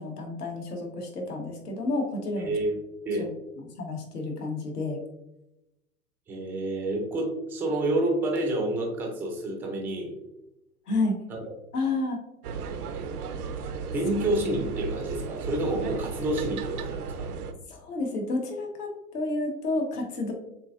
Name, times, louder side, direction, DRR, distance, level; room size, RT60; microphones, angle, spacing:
voice 1, 0.0-2.5 3.2-3.3 3.8-5.0 10.9-11.2 11.7-12.2 17.7-20.3, left 2 dB, 85° left, 2 dB, 1.3 m, -30 dB
voice 2, 2.4-2.7 3.1-3.3 6.3-10.1 11.3-11.5 13.9-17.3, right 1 dB, 5° right, 1 dB, 0.3 m, -29 dB
sound 1, 12.4-17.5, right 5 dB, 90° right, 0.6 m, -35 dB
7.3 x 2.6 x 2.4 m, 0.90 s
hypercardioid pair, 115°, 45 cm